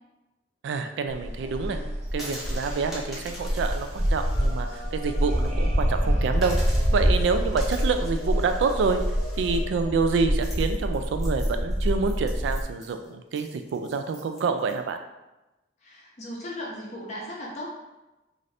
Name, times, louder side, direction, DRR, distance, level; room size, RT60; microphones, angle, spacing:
voice 1, 0.6-1.8 2.1-6.6 6.9-9.0 9.4-15.0, right 4 dB, 80° right, 7 dB, 0.3 m, -27 dB
sound 1, 1.1-12.6, equal, 35° right, 0.7 m, -26 dB
sound 2, 2.1-5.5 5.8-5.9 6.4-14.7, equal, ahead, 0.7 m, -44 dB
sound 3, 4.3-9.9, left 1 dB, 90° left, 0.7 m, -42 dB
voice 2, 15.8-17.7, left 1 dB, 40° left, -4 dB, 0.6 m, -37 dB
2.6 x 2.5 x 3.2 m, 1.0 s
head